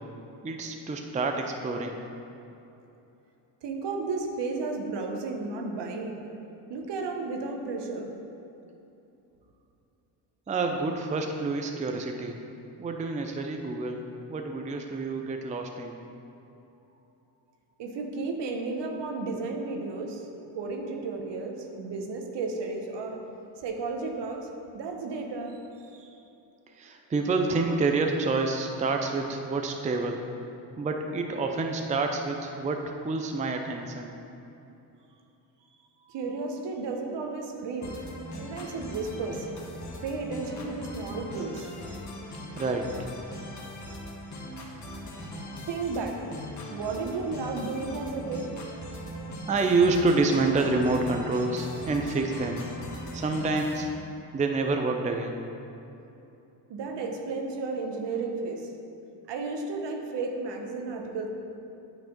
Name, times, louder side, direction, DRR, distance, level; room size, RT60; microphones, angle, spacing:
voice 1, 0.4-2.0 10.5-12.4 12.8-14.0 14.3-16.0 26.7-30.2 30.8-34.1 42.5-43.1 45.3-45.5 49.5-52.7 53.1-53.9 54.3-55.4, right 3 dB, 15° right, 3 dB, 0.5 m, -28 dB
voice 2, 3.6-6.2 6.7-8.1 17.8-20.2 20.5-23.2 23.6-24.5 24.7-25.6 26.0-26.1 36.1-38.0 38.4-39.5 40.0-41.7 45.7-46.2 46.7-48.5 56.7-58.6 59.3-61.3, right 3 dB, 60° right, 3 dB, 1.0 m, -33 dB
sound 1, 37.8-53.8, left 1 dB, 35° left, 1.6 m, -40 dB
8.9 x 3.2 x 5.2 m, 2.8 s
supercardioid pair, 70°, 48 cm